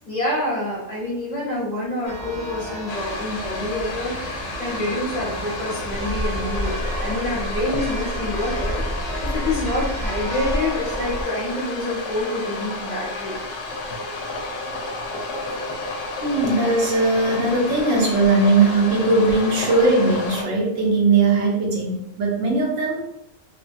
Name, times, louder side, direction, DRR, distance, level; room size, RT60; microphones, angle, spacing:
voice 1, 0.0-6.7 7.0-13.4, left 1 dB, 35° left, -7 dB, 0.9 m, -27 dB
Church bell, 2.0-11.2, equal, 20° right, 0.4 m, -30 dB
sound 1, 2.9-20.4, left 2 dB, 75° left, 0.9 m, -31 dB
voice 2, 15.1-15.5 16.2-23.1, right 3 dB, 80° right, -3 dB, 1.2 m, -19 dB
3.2 x 2.2 x 2.6 m, 0.82 s
omnidirectional pair, 1.3 m